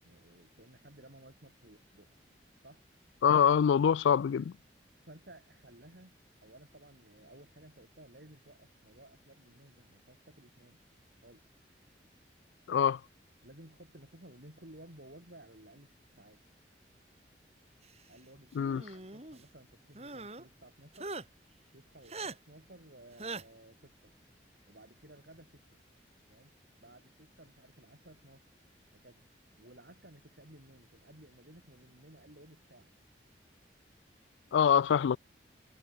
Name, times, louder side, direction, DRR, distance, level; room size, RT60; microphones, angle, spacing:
voice 1, 0.0-2.1 2.6-2.8 5.1-10.8 11.2-11.6 13.4-16.4 18.1-18.6 18.9-21.1 21.7-24.1 24.7-25.8 26.3-26.5 26.8-28.5 28.9-29.2 29.6-32.9, right 1 dB, 65° right, 5.4 m, -56 dB
voice 2, 3.2-4.5 12.7-13.0 18.6-18.8 34.5-35.2, left 7 dB, 90° left, 0.3 m, -25 dB
sound 1, 18.6-19.4 19.9-20.4 20.9-21.2 22.1-22.3 23.2-23.4, right 3 dB, 35° right, 3.9 m, -41 dB
head